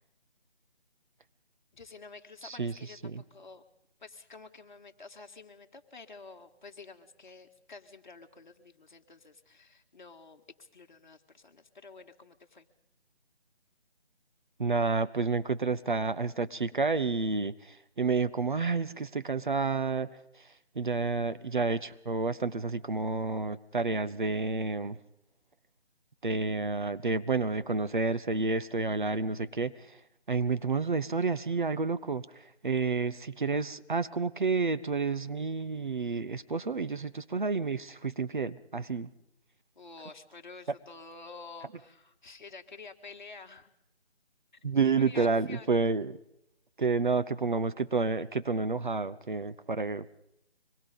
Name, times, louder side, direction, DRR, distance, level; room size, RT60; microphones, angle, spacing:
voice 1, 1.7-3.6 4.0-12.7 39.8-43.7 44.5-44.6 45.1-45.7, left 4 dB, 45° left, 5 dB, 1.9 m, -50 dB
voice 2, 2.4-2.7 3.1-3.2 14.6-25.0 26.2-30.0 30.3-39.1 44.6-46.2 46.8-50.2, right 4 dB, 45° right, 12 dB, 0.8 m, -30 dB
25.0 x 21.5 x 5.4 m, 0.80 s
figure-of-eight pair, 160°, 33 cm